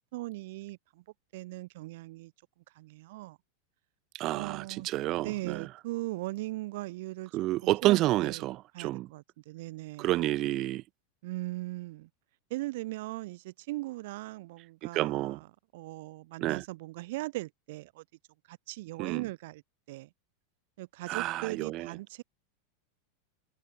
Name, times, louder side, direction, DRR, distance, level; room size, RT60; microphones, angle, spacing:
voice 1, 0.1-1.0 1.3-2.3 2.7-3.4 4.3-7.3 7.6-8.5 8.7-10.1 11.2-12.1 12.5-15.5 15.7-18.0 18.5-19.6 19.9-20.1 20.8-22.2, right 19 dB, 65° right, 6.3 m, -39 dB
voice 2, 4.1-5.6 7.3-9.1 10.0-10.8 14.9-15.4 16.4-16.6 19.0-19.2 21.1-21.9, right 17 dB, 45° right, 1.5 m, -29 dB
hypercardioid pair, 105°, 0 cm